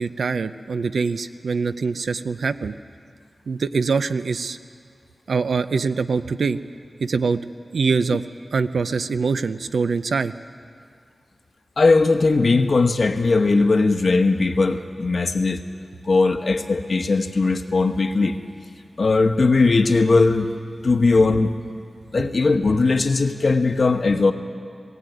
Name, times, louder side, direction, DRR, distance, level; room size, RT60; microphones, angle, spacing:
voice 1, 0.0-2.7 3.5-4.6 5.3-6.6 7.0-7.4 7.7-10.3, right 4 dB, 90° right, 11 dB, 0.6 m, -23 dB
voice 2, 11.8-15.6 16.0-18.4 19.0-20.5 20.8-21.5 22.1-24.3, left 3 dB, 60° left, 7 dB, 1.1 m, -19 dB
19.5 x 16.0 x 9.3 m, 2.2 s
wide cardioid pair, 110°, 0 cm